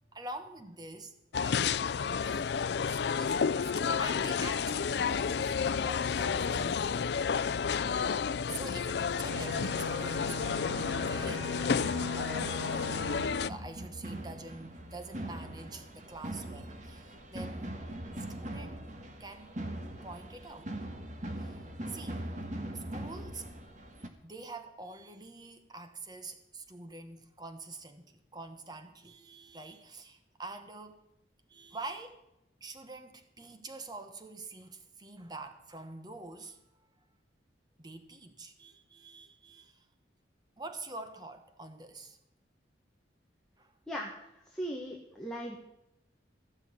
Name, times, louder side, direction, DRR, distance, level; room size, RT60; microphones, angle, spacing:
voice 1, 0.1-1.1 1.4-7.0 7.6-7.9 8.5-10.3 11.1-11.6 12.1-13.1 13.5-17.8 18.2-18.8 19.2-19.6 20.0-20.8 21.4-21.6 21.9-22.3 22.7-23.5 24.2-31.0 31.5-32.2 32.6-36.7 37.8-39.8 40.6-42.2 43.6-43.7, right 2 dB, 20° right, 8 dB, 1.2 m, -46 dB
sound 1, 1.3-13.5, left 6 dB, 65° left, 0.4 m, -31 dB
sound 2, 9.3-13.3, left 2 dB, 80° right, 2.4 m, -40 dB
sound 3, 10.7-24.1, right 1 dB, 40° right, 1.5 m, -42 dB
voice 2, 44.5-45.6, equal, 5° left, -2 dB, 1.5 m, -38 dB
15.5 x 6.5 x 9.6 m, 0.87 s
head